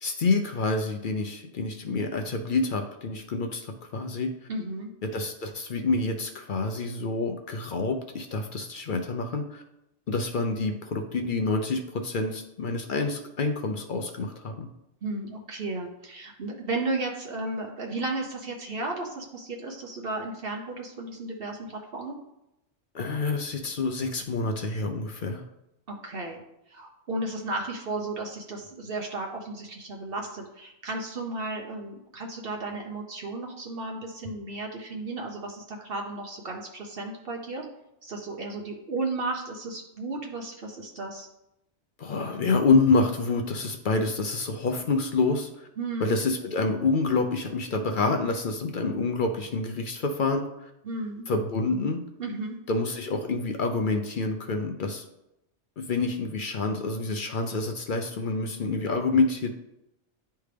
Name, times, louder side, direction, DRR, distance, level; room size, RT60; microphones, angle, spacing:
voice 1, 0.0-4.3 5.0-9.6 10.1-14.7 22.9-25.4 42.0-45.7 46.0-50.7 51.3-52.0 52.7-55.1 55.8-59.5, left 3 dB, 55° left, 5 dB, 0.6 m, -27 dB
voice 2, 4.5-4.9 15.0-22.2 25.9-26.4 26.7-37.7 38.0-41.3 45.8-46.2 50.8-51.3 52.2-52.6, right 2 dB, 55° right, 1 dB, 0.9 m, -34 dB
10.0 x 3.4 x 3.3 m, 0.85 s
omnidirectional pair, 1.2 m